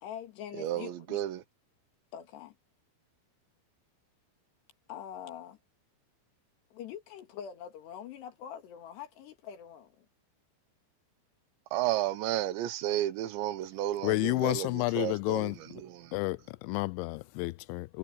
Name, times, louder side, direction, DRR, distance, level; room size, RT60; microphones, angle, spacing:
voice 1, 0.0-1.2 2.1-2.6 4.9-5.6 6.7-10.1, left 9 dB, 65° left, 4.1 m, -44 dB
voice 2, 0.6-1.4 11.7-16.1, right 13 dB, 75° right, 3.3 m, -32 dB
voice 3, 14.0-15.6 16.1-18.0, left 22 dB, 85° left, 2.8 m, -30 dB
omnidirectional pair, 5.3 m